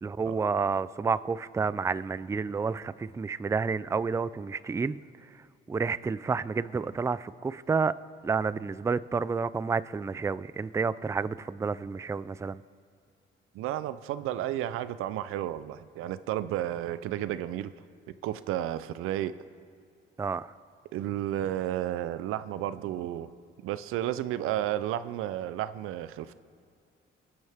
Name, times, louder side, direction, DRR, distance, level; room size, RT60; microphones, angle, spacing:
voice 1, 0.0-5.0 5.7-7.9 8.2-12.6 20.2-20.5, right 5 dB, 15° right, 16 dB, 0.3 m, -30 dB
voice 2, 13.5-17.7 18.2-19.3 20.9-23.3 23.6-26.3, right 12 dB, 90° right, 14 dB, 0.5 m, -32 dB
25.0 x 9.6 x 3.5 m, 2.2 s
cardioid pair, 95°, 21 cm